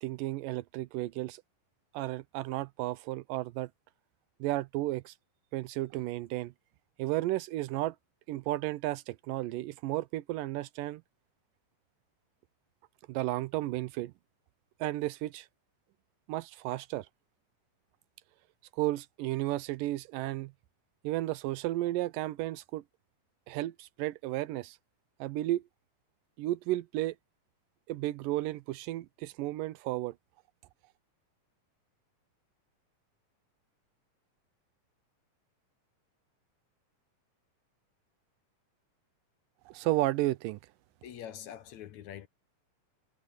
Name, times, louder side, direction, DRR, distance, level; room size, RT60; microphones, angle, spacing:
voice 1, 0.0-1.4 1.9-3.7 4.4-5.1 5.5-6.5 7.0-8.0 8.3-11.0 13.1-14.1 14.8-15.5 16.3-17.1 18.7-20.5 21.0-22.8 23.5-24.8 25.2-25.6 26.4-27.2 27.9-30.2 39.7-40.6, right 16 dB, 85° right, 2.3 m, -33 dB
voice 2, 41.0-42.3, left 10 dB, 65° left, 2.3 m, -44 dB
omnidirectional pair, 3.8 m